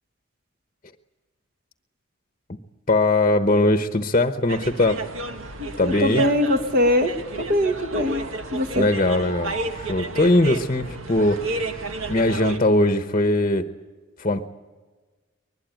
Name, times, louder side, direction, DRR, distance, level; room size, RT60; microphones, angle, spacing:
voice 1, 2.9-5.0 5.8-6.2 8.8-11.6 12.1-13.7 14.2-14.5, left 2 dB, 35° left, 9 dB, 1.0 m, -20 dB
sound 1, 4.5-12.6, right 3 dB, 80° right, 1.8 m, -32 dB
voice 2, 5.6-7.1 7.4-8.2 8.5-8.9, left 1 dB, 50° right, 7 dB, 1.9 m, -22 dB
24.0 x 21.0 x 9.1 m, 1.3 s
head